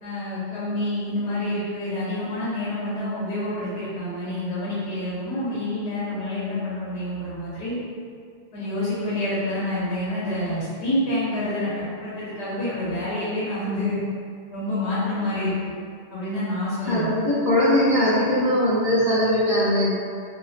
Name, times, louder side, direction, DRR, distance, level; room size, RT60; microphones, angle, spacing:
voice 1, 0.0-7.8 8.5-14.0 14.5-15.7 16.1-17.1, left 1 dB, 75° left, -9 dB, 0.9 m, -28 dB
voice 2, 16.9-20.0, left 1 dB, 40° left, -14 dB, 0.8 m, -20 dB
2.5 x 2.3 x 2.3 m, 2.2 s
omnidirectional pair, 1.1 m